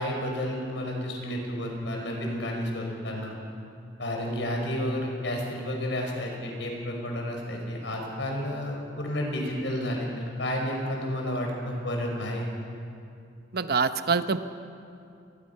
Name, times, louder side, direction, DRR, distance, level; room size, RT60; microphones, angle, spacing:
voice 1, 0.0-3.4 4.0-12.5, left 1 dB, 85° left, 1 dB, 5.3 m, -31 dB
voice 2, 13.5-14.4, right 5 dB, 60° right, 10 dB, 0.8 m, -25 dB
26.5 x 20.5 x 5.7 m, 2.5 s
head